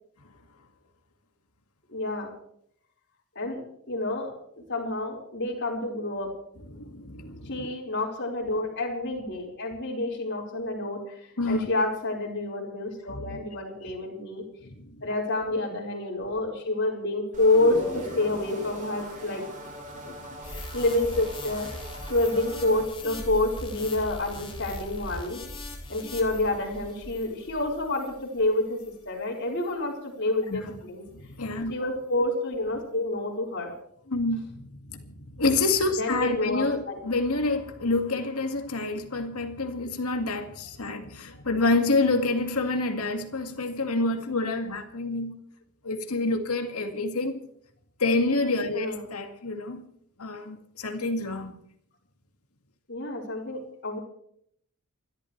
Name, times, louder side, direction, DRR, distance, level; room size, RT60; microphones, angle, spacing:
voice 1, 1.9-2.3 3.3-4.3 4.7-6.3 7.4-11.2 11.5-14.4 15.0-19.4 20.0-20.1 20.5-21.7 22.1-25.4 25.9-28.8 29.0-31.0 31.7-33.7 36.0-37.0 41.3-41.4 48.7-49.0 52.9-54.0, left 2 dB, 55° left, 4.9 m, -28 dB
voice 2, 6.7-7.7 11.4-11.7 13.1-13.4 14.6-14.9 30.5-30.7 31.2-31.7 34.1-45.4 45.8-47.4 48.0-49.9 50.2-51.5, left 2 dB, 85° left, 2.1 m, -28 dB
sound 1, 17.3-22.9, right 1 dB, 35° right, 4.6 m, -42 dB
sound 2, 17.5-20.4, left 1 dB, ahead, 7.9 m, -40 dB
sound 3, 20.4-29.1 29.6-29.7, left 2 dB, 25° left, 3.6 m, -40 dB
29.5 x 12.5 x 3.3 m
head